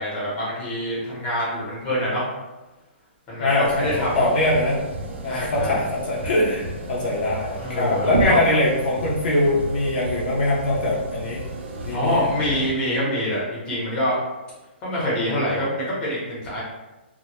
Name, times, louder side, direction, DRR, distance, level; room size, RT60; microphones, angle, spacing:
voice 1, 0.0-2.2 3.3-4.3 5.3-5.8 7.6-8.4 11.9-14.1 14.8-16.6, equal, 15° left, -7 dB, 0.7 m, -25 dB
voice 2, 3.4-4.8 5.2-11.4 11.8-12.6, left 1 dB, 50° left, -4 dB, 0.5 m, -22 dB
sound 1, 3.6-12.7, right 2 dB, 80° right, 0.5 m, -32 dB
2.1 x 2.1 x 2.8 m, 1.1 s
hypercardioid pair, 165°, 6 cm